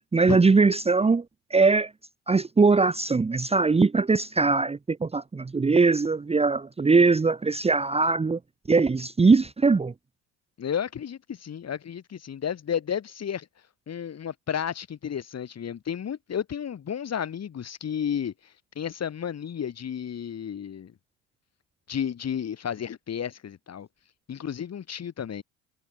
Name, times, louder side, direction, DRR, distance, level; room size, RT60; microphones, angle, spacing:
voice 1, 0.1-1.2 1.5-1.9 2.3-8.4 8.7-9.9, right 4 dB, 15° right, 1.2 m, -21 dB
voice 2, 10.6-13.5 13.9-18.3 18.7-20.9 21.9-23.9 24.3-25.4, left 8 dB, 40° left, 6.4 m, -32 dB
hypercardioid pair, 75°, 39 cm